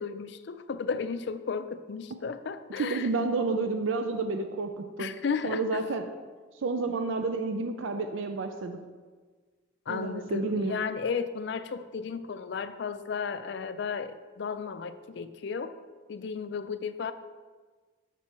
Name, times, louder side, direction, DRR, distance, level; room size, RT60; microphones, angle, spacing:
voice 1, 0.0-3.1 5.0-5.8 9.9-15.7 16.1-17.1, left 5 dB, 60° left, 11 dB, 0.4 m, -34 dB
voice 2, 2.9-5.1 5.4-6.1 6.6-8.8 9.9-10.7, right 3 dB, 80° right, 6 dB, 0.5 m, -30 dB
6.7 x 6.1 x 4.3 m, 1.4 s
head